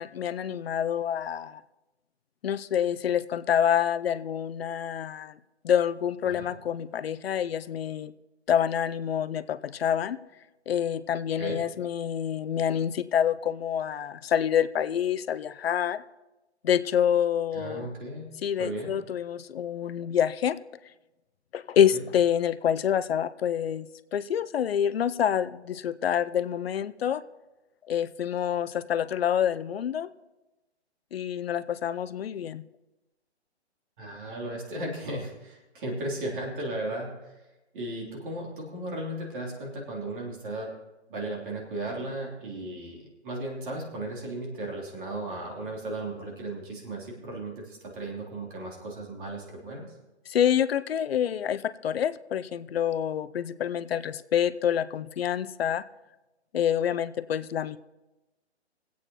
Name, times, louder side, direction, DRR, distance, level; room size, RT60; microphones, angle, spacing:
voice 1, 0.0-1.6 2.4-5.4 5.6-8.1 8.5-10.2 10.7-16.0 16.6-17.9 18.4-20.6 21.5-27.2 27.9-30.1 31.1-32.6 50.3-55.8 56.5-57.8, left 9 dB, 65° left, 15 dB, 0.6 m, -27 dB
voice 2, 17.5-18.3 18.6-18.9 21.9-22.0 34.0-37.3 37.7-40.7 41.1-49.9, right 1 dB, 50° right, -1 dB, 3.1 m, -35 dB
25.5 x 8.5 x 3.0 m, 1.0 s
hypercardioid pair, 140°, 33 cm